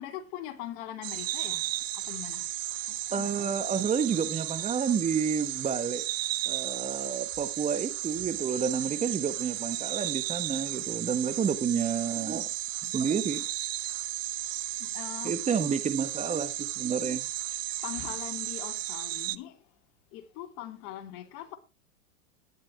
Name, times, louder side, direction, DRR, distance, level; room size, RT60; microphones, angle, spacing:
voice 1, 0.0-2.5 2.9-3.7 8.6-8.7 9.0-9.1 9.6-10.2 14.8-15.3 17.5-19.6 20.1-21.6, left 12 dB, 50° left, 3.0 m, -42 dB
sound 1, 1.0-19.4, right 16 dB, 65° right, 0.9 m, -34 dB
voice 2, 3.1-6.1 6.5-13.4 15.2-17.3, right 6 dB, 15° right, 1.2 m, -30 dB
12.5 x 10.5 x 4.7 m
hypercardioid pair, 105°, 42 cm